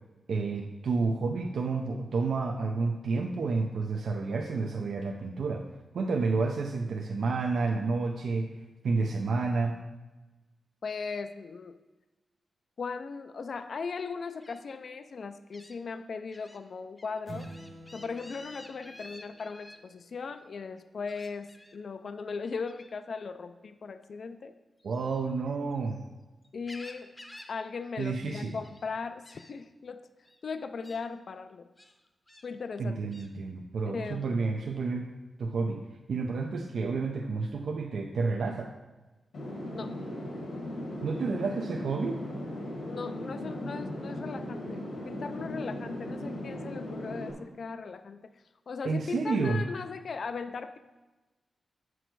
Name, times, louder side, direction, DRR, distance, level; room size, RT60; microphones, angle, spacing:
voice 1, 0.3-5.7 5.9-8.5 8.8-9.8 24.8-26.0 28.0-28.6 32.8-35.1 35.4-35.8 36.1-38.7 41.0-42.2 48.8-49.6, right 4 dB, 75° right, 2 dB, 0.5 m, -30 dB
voice 2, 10.8-11.8 12.8-17.5 17.9-24.5 26.5-27.1 27.5-30.1 30.4-31.7 32.4-33.1 33.9-34.4 39.7-39.9 42.8-48.2 48.7-50.8, left 5 dB, 55° left, 10 dB, 0.3 m, -38 dB
Gull seagull, 14.4-14.6 15.5-15.8 16.3-16.6 17.0-19.8 21.1-21.8 22.7-22.9 24.8-26.1 26.4-27.6 27.8-28.1 28.4-28.9 29.2-29.5 30.2-30.4 30.8-31.0 31.8-32.5 33.1-33.3, left 1 dB, 15° left, 0.7 m, -51 dB
sound 1, 17.3-19.9, right 2 dB, 30° right, 0.9 m, -47 dB
sound 2, 39.3-47.3, left 1 dB, 90° left, 2.0 m, -37 dB
7.8 x 6.2 x 4.6 m, 1.1 s
wide cardioid pair, 135°, 0 cm